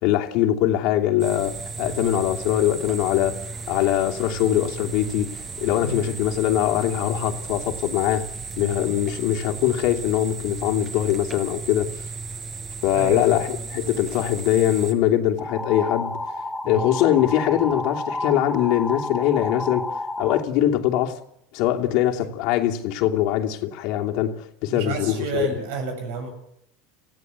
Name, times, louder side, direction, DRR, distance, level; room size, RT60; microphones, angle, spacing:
voice 1, 0.0-5.3 5.6-8.2 8.6-11.9 12.8-16.2 16.6-21.2 21.5-25.5, left 12 dB, 65° left, 2.8 m, -22 dB
sound 1, 1.2-14.9, right 4 dB, 35° right, 5.9 m, -35 dB
voice 2, 12.9-13.7 16.6-16.9 17.4-17.6 24.7-26.3, right 4 dB, 75° right, 7.3 m, -31 dB
sound 2, 15.4-20.4, left 2 dB, 5° left, 2.4 m, -30 dB
26.5 x 16.5 x 8.3 m
supercardioid pair, 110°, 0 cm